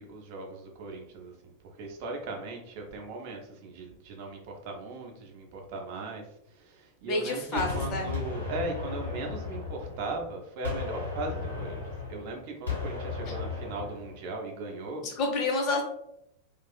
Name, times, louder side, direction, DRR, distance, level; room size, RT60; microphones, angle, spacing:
voice 1, 0.0-1.3 1.8-6.3 6.6-11.8 12.1-15.0, right 2 dB, 45° right, 2 dB, 0.4 m, -38 dB
voice 2, 7.0-8.1 15.0-15.8, left 2 dB, 35° left, 2 dB, 0.5 m, -29 dB
Gunshot gunfire, 7.6-10.3 10.6-14.2, left 4 dB, 85° left, 1.1 m, -35 dB
2.4 x 2.3 x 2.2 m, 0.78 s
figure-of-eight pair, 90°, 0 cm